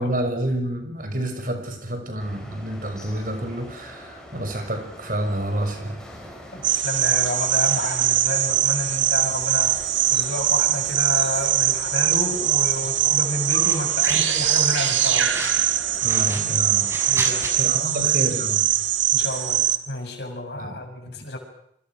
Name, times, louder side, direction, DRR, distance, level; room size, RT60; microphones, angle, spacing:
voice 1, 0.0-6.0 16.0-16.9 17.6-18.7 19.2-19.3 20.6-20.8 21.1-21.2, right 1 dB, 45° right, 6 dB, 6.0 m, -28 dB
sound 1, 2.2-17.8, equal, 5° left, 6.8 m, -44 dB
voice 2, 6.5-9.8 10.1-15.3 17.1-17.8 19.1-21.4, left 1 dB, 60° left, 3 dB, 6.8 m, -30 dB
sound 2, 6.6-19.8, right 11 dB, 85° right, 2.3 m, -22 dB
sound 3, 13.5-14.5 14.8-15.6 16.0-17.5, right 1 dB, 15° right, 6.2 m, -33 dB
27.5 x 26.5 x 6.4 m, 0.71 s
head